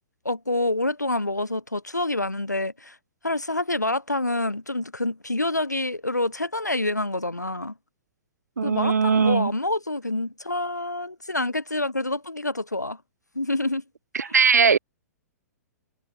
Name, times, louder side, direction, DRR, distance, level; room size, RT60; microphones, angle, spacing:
voice 1, 0.2-2.9 3.2-7.7 8.6-13.0 13.3-13.8 14.3-14.4, left 2 dB, 85° left, 4.9 m, -27 dB
voice 2, 8.6-9.5 14.1-14.8, right 5 dB, 75° right, 1.2 m, -20 dB
figure-of-eight pair, 110°, 9 cm